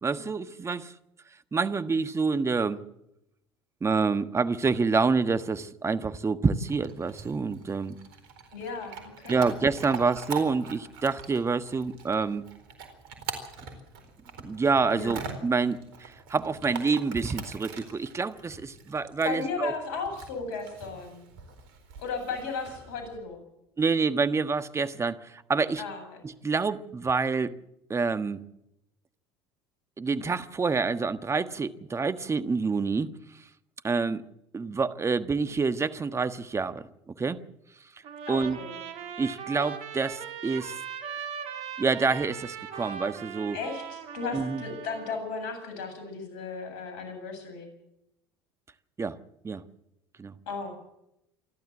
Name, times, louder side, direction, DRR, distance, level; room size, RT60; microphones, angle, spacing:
voice 1, 0.0-0.9 1.5-2.8 3.8-8.0 9.3-12.4 14.4-19.7 23.8-25.8 26.2-27.5 27.9-28.4 30.0-33.1 33.8-34.2 34.5-36.8 37.2-37.4 38.3-38.6 39.2-40.8 41.8-43.6 44.3-44.6 49.0-49.2 49.4-49.6 50.2-50.3, right 4 dB, 20° right, 1.3 m, -27 dB
Chewing mastication / Dog, 6.7-23.2, right 6 dB, 75° right, 4.2 m, -43 dB
voice 2, 8.5-9.4 14.9-15.2 19.2-21.2 22.0-23.4 25.8-26.0 38.3-38.8 43.5-47.7 50.5-50.7, left 4 dB, 70° left, 7.9 m, -35 dB
Trumpet, 38.0-45.2, right 7 dB, 55° right, 3.1 m, -39 dB
28.0 x 12.0 x 7.5 m
hypercardioid pair, 70°, 12 cm